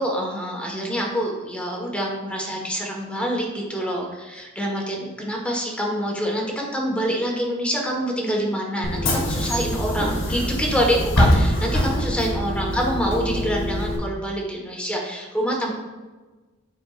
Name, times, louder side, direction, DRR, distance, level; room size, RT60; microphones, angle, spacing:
voice 1, 0.0-15.7, equal, 5° left, -1 dB, 1.3 m, -26 dB
Bus / Engine, 8.8-14.0, equal, 65° left, 2.0 m, -23 dB
13.0 x 4.4 x 2.5 m, 1.3 s
head